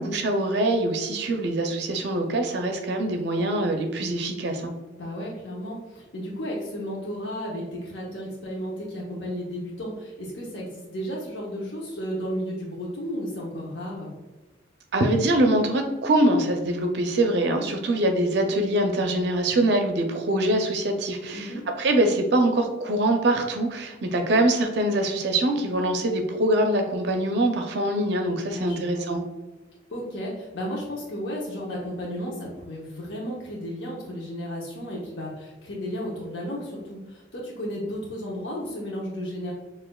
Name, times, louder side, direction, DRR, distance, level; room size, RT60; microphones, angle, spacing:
voice 1, 0.0-4.7 14.9-21.5 21.8-29.2, right 1 dB, 60° right, 4 dB, 0.4 m, -23 dB
voice 2, 4.9-14.1 21.3-21.7 28.5-29.1 29.9-39.5, equal, 65° left, -4 dB, 0.8 m, -33 dB
6.3 x 2.4 x 2.2 m, 1.2 s
head